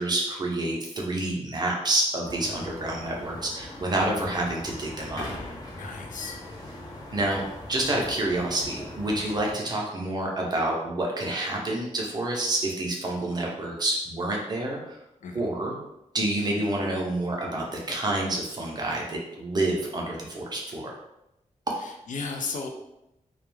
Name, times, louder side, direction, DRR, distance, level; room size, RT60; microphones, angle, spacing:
voice 1, 0.0-5.2 7.1-7.4 7.7-14.9 15.3-15.8 16.1-20.9, right 1 dB, 30° right, -2 dB, 0.5 m, -28 dB
sound 1, 2.2-9.5, left 1 dB, 30° left, 0.5 m, -40 dB
voice 2, 5.8-6.4 15.2-15.5 21.8-22.7, left 4 dB, 85° left, 3 dB, 0.4 m, -35 dB
2.3 x 2.1 x 3.1 m, 0.87 s
wide cardioid pair, 155°, 13 cm